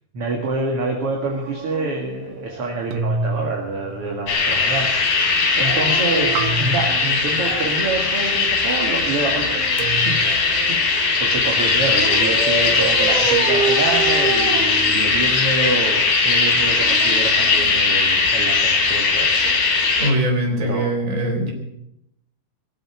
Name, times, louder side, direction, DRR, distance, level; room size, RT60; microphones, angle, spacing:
voice 1, 0.1-5.3 5.5-10.2 10.7-19.3 20.6-20.9, right 2 dB, 45° right, 0 dB, 2.4 m, -27 dB
Dog, 1.1-3.0 5.5-7.8 9.1-10.8 11.9-15.5 16.5-18.1 19.4-19.6, right 5 dB, 60° right, 2.7 m, -29 dB
sound 1, 2.9-4.7 6.3-7.8 9.8-10.2, right 3 dB, 85° right, 1.8 m, -28 dB
sound 2, 4.3-20.1, left 4 dB, 60° left, 4.5 m, -19 dB
voice 2, 20.0-21.5, right 1 dB, 20° right, 1 dB, 3.7 m, -21 dB
20.5 x 7.9 x 9.0 m, 0.80 s
omnidirectional pair, 4.9 m